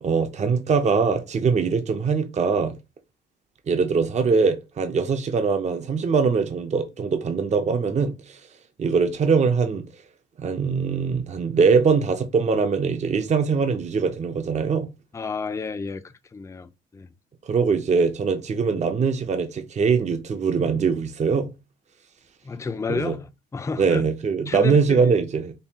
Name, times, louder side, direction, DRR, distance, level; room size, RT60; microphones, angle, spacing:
voice 1, 0.0-2.8 3.7-8.4 8.8-9.8 10.4-14.9 17.5-21.5 22.9-23.1 23.8-25.5, right 5 dB, 35° right, 0.6 m, -22 dB
voice 2, 15.1-17.1 22.4-24.1 24.5-25.1, left 4 dB, 15° left, 0.4 m, -31 dB
5.3 x 2.3 x 2.8 m
cardioid pair, 90°, 20 cm